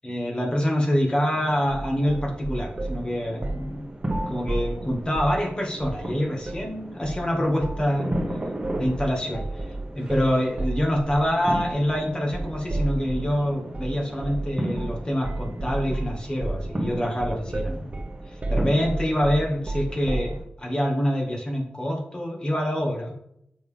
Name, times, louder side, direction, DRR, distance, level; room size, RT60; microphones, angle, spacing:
voice 1, 0.0-3.8 4.3-8.1 8.8-17.9 18.3-20.3 20.6-23.2, equal, 25° left, 0 dB, 1.9 m, -26 dB
sound 1, 1.3-20.4, right 1 dB, 20° right, 1.5 m, -36 dB
sound 2, 1.7-3.0 3.4-3.7 4.0-5.4 5.8-6.1 6.4-6.7 7.0-7.3 7.6-13.3 13.7-13.9 14.2-14.5 14.8-15.0 15.2-20.4, right 2 dB, 35° right, 1.3 m, -31 dB
7.2 x 6.1 x 3.5 m, 0.74 s
wide cardioid pair, 90°, 4 cm